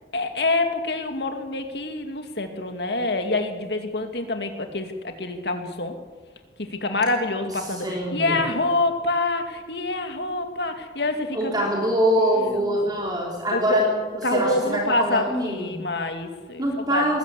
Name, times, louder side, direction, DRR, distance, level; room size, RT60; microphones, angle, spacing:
voice 1, 0.1-5.9 6.6-11.7 12.3-12.8 13.5-13.8 14.2-16.7 16.9-17.0, left 2 dB, 65° left, 6 dB, 2.4 m, -26 dB
voice 2, 7.7-8.4 11.3-13.9 14.2-15.9 16.6-17.2, equal, 25° right, -2 dB, 3.5 m, -24 dB
20.5 x 15.5 x 8.3 m, 1.4 s
head